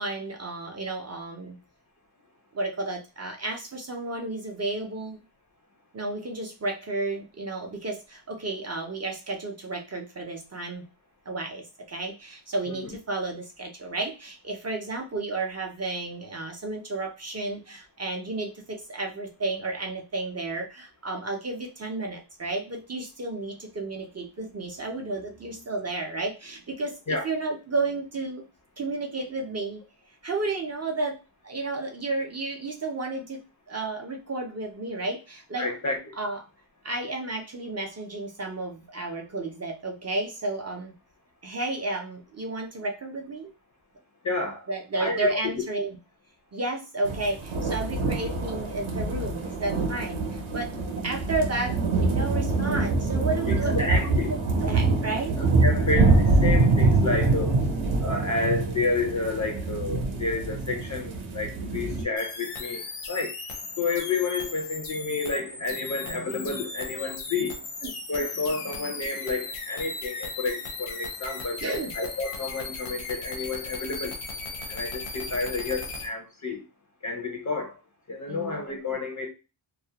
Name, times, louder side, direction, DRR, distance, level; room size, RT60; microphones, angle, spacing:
voice 1, 0.0-1.6 2.5-5.2 5.9-10.9 11.3-28.4 28.8-29.8 30.2-35.7 36.2-36.4 36.8-40.9 41.4-43.5 44.7-46.0 46.5-50.7 51.0-55.4 67.8-67.9 71.6-71.9 78.3-78.6, right 2 dB, 35° right, 2 dB, 0.4 m, -32 dB
voice 2, 35.6-36.2 44.2-44.7 45.0-45.3 53.5-54.3 55.6-63.4 63.8-67.6 68.1-71.6 71.9-74.2 74.7-76.6 77.0-77.7 78.1-79.3, left 3 dB, 40° left, 2 dB, 0.4 m, -30 dB
sound 1, 47.0-62.0, right 3 dB, 65° right, 0.7 m, -25 dB
sound 2, 62.2-76.1, left 4 dB, 80° left, 0.7 m, -37 dB
2.3 x 2.0 x 2.8 m, 0.29 s
wide cardioid pair, 165°, 50 cm